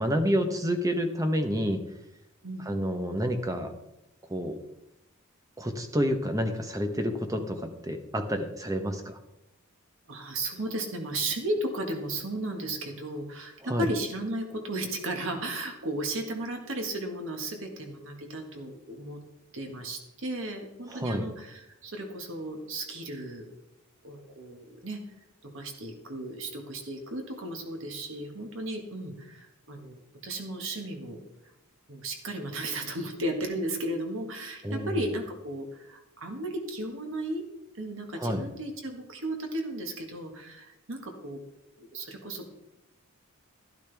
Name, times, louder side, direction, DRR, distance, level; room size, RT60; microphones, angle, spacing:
voice 1, 0.0-1.8 2.7-3.7 4.3-4.6 5.6-9.2 13.7-13.9 20.9-21.2 34.6-34.9 38.2-38.4, equal, 15° right, 6 dB, 0.9 m, -29 dB
voice 2, 10.1-19.2 19.5-23.5 24.0-25.0 25.4-31.2 31.9-37.4 37.8-41.4 41.8-42.5, right 1 dB, 60° right, 3 dB, 1.7 m, -35 dB
12.0 x 12.0 x 3.4 m, 0.88 s
head